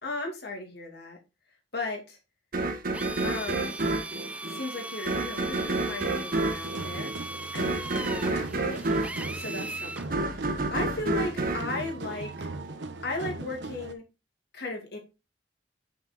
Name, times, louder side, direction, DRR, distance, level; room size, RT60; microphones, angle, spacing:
voice 1, 0.0-1.2 1.7-2.2 3.2-3.8 4.5-12.5 13.0-14.0 14.5-15.0, left 2 dB, 65° left, 1 dB, 2.6 m, -36 dB
sound 1, 2.5-12.7, right 2 dB, 55° right, 1.2 m, -30 dB
Drill, 2.9-10.1, right 2 dB, 10° right, 0.4 m, -39 dB
sound 2, 6.4-13.9, right 2 dB, 80° right, 0.9 m, -39 dB
6.0 x 5.9 x 4.1 m, 0.26 s
head